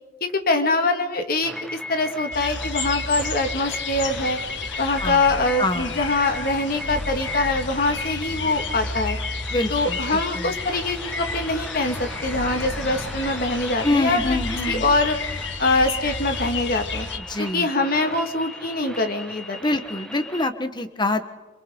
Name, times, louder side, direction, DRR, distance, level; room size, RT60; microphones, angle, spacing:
voice 1, 0.2-4.4 4.8-9.2 9.7-14.4 14.7-17.1 17.4-19.6, left 2 dB, 50° left, 5 dB, 2.0 m, -24 dB
sound 1, 1.4-20.5, left 1 dB, 5° left, 1.3 m, -37 dB
sound 2, 2.3-17.2, left 4 dB, 70° left, 1.6 m, -31 dB
voice 2, 5.6-5.9 9.5-10.5 13.8-14.8 17.1-17.7 19.6-21.2, left 2 dB, 25° left, 9 dB, 1.3 m, -25 dB
27.5 x 26.5 x 3.9 m, 1.3 s
head